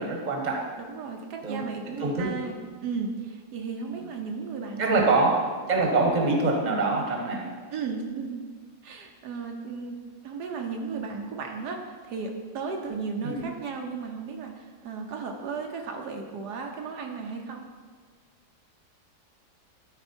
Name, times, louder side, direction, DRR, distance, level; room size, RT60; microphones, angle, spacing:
voice 1, 0.0-0.7 1.4-2.3 4.0-4.1 4.8-5.4 5.7-7.5 13.2-13.4, right 3 dB, 30° right, 0 dB, 1.3 m, -25 dB
voice 2, 0.8-5.2 7.7-8.5 8.8-10.0 10.2-17.7, right 5 dB, 80° right, 2 dB, 1.4 m, -35 dB
12.5 x 4.6 x 4.4 m, 1.5 s
omnidirectional pair, 1.7 m